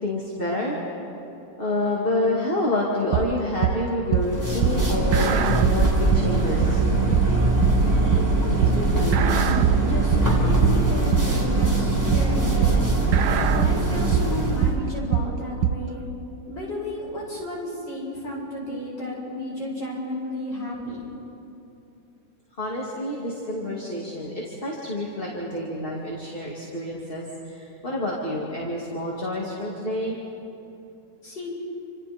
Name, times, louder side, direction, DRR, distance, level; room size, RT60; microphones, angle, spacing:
voice 1, 0.0-1.1 1.6-6.9 22.5-30.2, left 1 dB, 30° left, -4 dB, 2.6 m, -28 dB
sound 1, 3.1-15.9, right 9 dB, 75° right, 1.3 m, -24 dB
sound 2, 4.2-14.7, right 2 dB, 10° right, 3.2 m, -22 dB
voice 2, 8.1-12.9 13.5-16.0 16.5-21.0 31.2-31.6, left 1 dB, 85° left, -5 dB, 8.0 m, -32 dB
29.5 x 26.5 x 4.4 m, 2.8 s
omnidirectional pair, 1.9 m